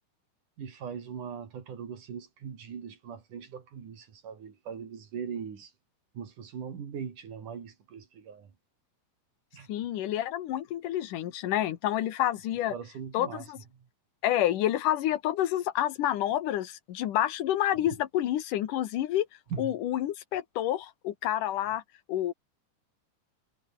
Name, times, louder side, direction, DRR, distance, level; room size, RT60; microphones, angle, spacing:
voice 1, 0.6-5.7 6.1-8.5 9.5-9.7 12.7-13.5 13.8-13.9 17.9-18.0 19.5-19.7, right 7 dB, 70° right, 4.4 m, -40 dB
voice 2, 9.7-12.7 13.1-13.6 14.2-19.3 19.6-21.8 22.1-22.3, left 12 dB, 75° left, 2.9 m, -28 dB
omnidirectional pair, 3.8 m